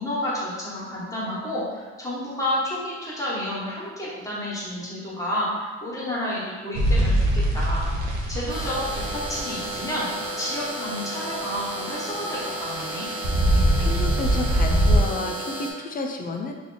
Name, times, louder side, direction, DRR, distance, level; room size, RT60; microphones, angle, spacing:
voice 1, 0.0-7.8 8.3-10.1 10.4-13.1, left 1 dB, 10° left, -7 dB, 1.3 m, -30 dB
sound 1, 6.7-15.0, right 1 dB, 65° right, 0.8 m, -23 dB
sound 2, 8.5-15.7, right 1 dB, 15° right, 0.7 m, -33 dB
voice 2, 13.5-16.5, left 3 dB, 30° left, 3 dB, 0.5 m, -31 dB
2.9 x 2.5 x 3.9 m, 1.4 s
cardioid pair, 90°, 30 cm